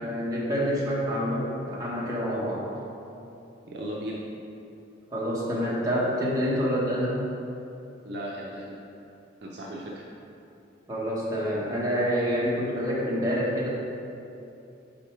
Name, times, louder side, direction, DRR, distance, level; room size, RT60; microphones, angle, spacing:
voice 1, 0.0-2.7 5.1-7.2 10.9-13.7, equal, 15° right, -6 dB, 1.0 m, -27 dB
voice 2, 3.7-4.2 8.0-8.7 9.4-10.1, equal, 55° right, -3 dB, 0.5 m, -36 dB
5.2 x 4.4 x 4.4 m, 2.7 s
head